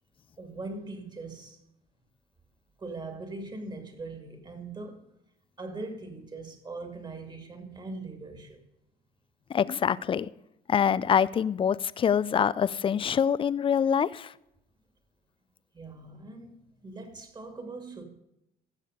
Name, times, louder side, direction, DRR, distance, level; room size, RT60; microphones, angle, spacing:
voice 1, 0.4-1.6 2.8-5.0 5.6-8.6 15.7-18.0, right 3 dB, 25° right, 2.4 m, -41 dB
voice 2, 9.5-10.3 10.7-14.3, left 8 dB, 30° left, 0.5 m, -25 dB
16.0 x 6.5 x 5.1 m
cardioid pair, 110°, 17 cm